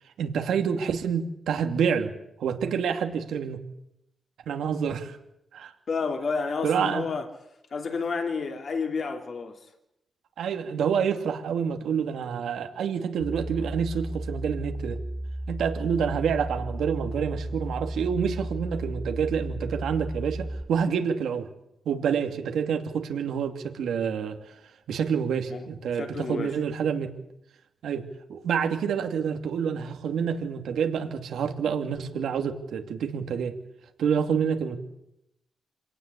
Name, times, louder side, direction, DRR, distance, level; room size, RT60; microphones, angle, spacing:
voice 1, 0.2-2.1 2.4-3.6 4.5-5.2 5.5-5.7 6.6-7.1 10.4-15.0 15.5-21.5 21.8-24.4 24.9-27.1 27.8-28.0 28.3-33.5 34.0-34.8, right 7 dB, 85° right, 2.7 m, -28 dB
voice 2, 5.9-7.3 7.7-9.6 25.5-25.7 25.9-26.5, left 4 dB, 45° left, 3.0 m, -30 dB
sound 1, 13.2-20.6, right 1 dB, 5° right, 2.7 m, -34 dB
26.5 x 18.0 x 8.4 m
wide cardioid pair, 145°, 0 cm